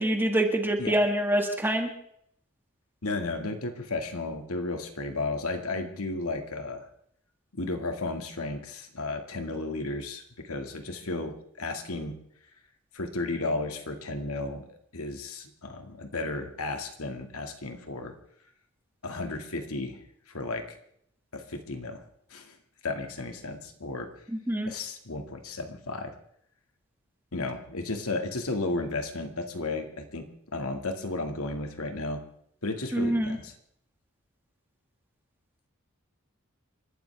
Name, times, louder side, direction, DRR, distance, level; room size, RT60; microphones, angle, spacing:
voice 1, 0.0-1.9 24.5-24.7 32.9-33.4, right 1 dB, 10° right, 4 dB, 1.9 m, -25 dB
voice 2, 3.0-6.8 7.5-12.2 12.9-18.1 19.0-20.0 20.3-20.6 21.3-22.0 22.3-22.5 22.8-24.1 24.6-26.1 27.3-30.3 30.5-32.2 32.6-33.6, left 2 dB, 75° left, 5 dB, 2.1 m, -33 dB
30.0 x 12.5 x 3.5 m, 0.69 s
head